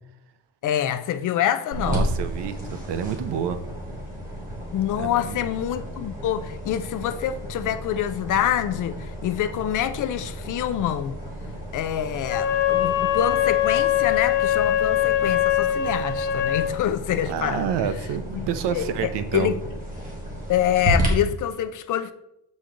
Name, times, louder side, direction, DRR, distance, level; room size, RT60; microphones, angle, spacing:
voice 1, 0.6-2.1 4.7-11.2 11.7-17.7 18.3-19.6 20.5-22.1, left 10 dB, 45° left, 0.4 m, -26 dB
sound 1, 1.7-21.1, right 1 dB, 20° right, 1.5 m, -33 dB
voice 2, 1.8-2.6 2.9-3.6 5.0-5.4 17.3-19.5, right 8 dB, 65° right, 0.8 m, -28 dB
Wind instrument woodwind instrument, 12.2-16.7, left 11 dB, 20° left, 1.9 m, -22 dB
7.1 x 5.2 x 3.7 m
cardioid pair, 180°, 44 cm